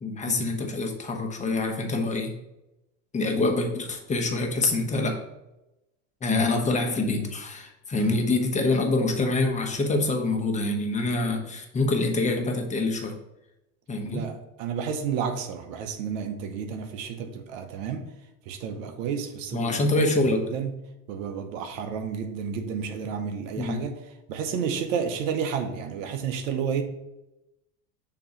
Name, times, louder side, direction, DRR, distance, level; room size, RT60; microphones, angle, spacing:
voice 1, 0.0-2.3 3.1-5.2 6.2-13.1 13.9-14.3 19.5-20.4 23.6-23.8, left 2 dB, 20° left, 1.0 m, -25 dB
voice 2, 14.1-18.0 18.5-19.7 20.3-20.7 21.1-24.0 24.3-26.8, right 7 dB, 85° right, 0.9 m, -31 dB
6.8 x 3.0 x 5.0 m
supercardioid pair, 125°, 39 cm